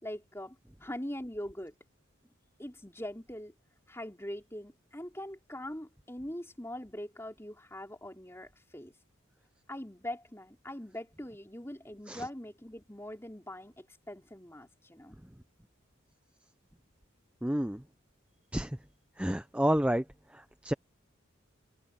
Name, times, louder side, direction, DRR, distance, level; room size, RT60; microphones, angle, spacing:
voice 1, 0.0-1.7 2.6-3.5 3.9-8.9 9.7-15.2, left 1 dB, 10° left, 3.8 m, -42 dB
voice 2, 17.4-17.8 18.5-18.8 19.2-20.0 20.3-20.7, equal, 5° right, 0.6 m, -30 dB
open air
head